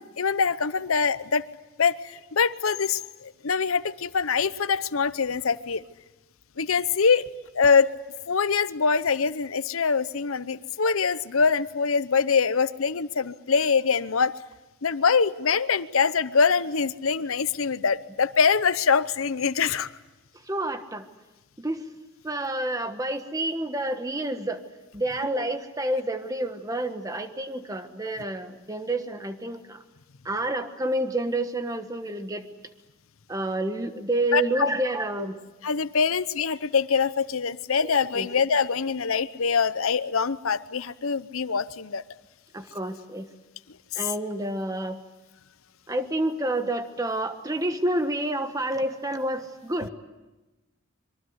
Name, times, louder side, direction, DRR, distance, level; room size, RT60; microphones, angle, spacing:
voice 1, 0.2-1.4 1.8-5.8 6.6-7.2 7.5-7.9 8.3-14.4 14.8-19.9 25.4-25.5 34.3-34.7 35.2-35.3 35.6-42.0, left 5 dB, 80° left, 15 dB, 0.8 m, -24 dB
voice 2, 20.4-21.1 21.6-21.8 22.2-24.6 24.9-29.8 30.2-32.5 33.3-35.4 38.1-38.3 42.5-43.3 43.9-45.0 45.9-49.9, right 1 dB, 15° right, 8 dB, 1.3 m, -29 dB
25.5 x 23.0 x 8.0 m, 1.1 s
head